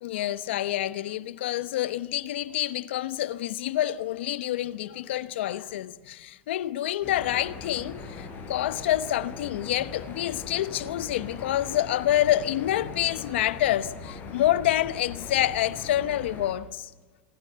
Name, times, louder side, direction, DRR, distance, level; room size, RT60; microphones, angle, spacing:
voice 1, 0.0-16.9, left 13 dB, 80° left, 0.9 m, -27 dB
sound 1, 7.0-16.5, left 4 dB, 35° left, 6.0 m, -40 dB
26.5 x 20.5 x 6.8 m
supercardioid pair, 115°, 6 cm